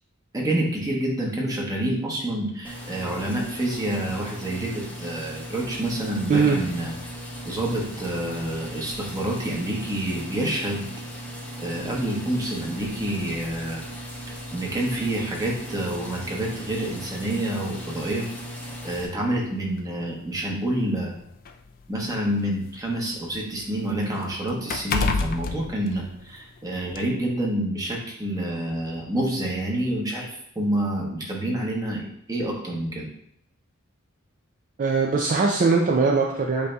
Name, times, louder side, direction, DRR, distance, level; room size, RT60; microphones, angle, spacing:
voice 1, 0.3-6.9 7.4-10.9 11.6-13.8 14.5-18.3 18.8-21.1 21.9-33.1, right 1 dB, 15° right, -2 dB, 1.0 m, -28 dB
sound 1, 2.6-19.1, equal, 5° left, 0.7 m, -37 dB
sound 2, 17.9-18.1 19.1-19.2 19.7-19.8 20.7-22.7 23.1-26.5 26.9-27.1, left 4 dB, 45° left, 0.4 m, -30 dB
voice 2, 34.8-36.7, right 4 dB, 40° right, 0 dB, 0.4 m, -21 dB
8.1 x 2.8 x 2.3 m, 0.72 s
head